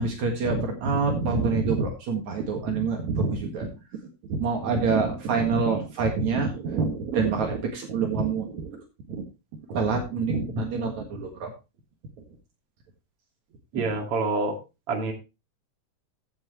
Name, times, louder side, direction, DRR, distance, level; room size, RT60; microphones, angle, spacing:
voice 1, 0.0-3.7 4.3-9.3 9.7-11.5 13.7-13.8, right 4 dB, 75° right, 2 dB, 3.1 m, -26 dB
voice 2, 13.7-14.5 14.9-15.1, right 3 dB, 50° right, 2 dB, 3.0 m, -26 dB
15.5 x 7.7 x 3.0 m, 0.28 s
omnidirectional pair, 3.3 m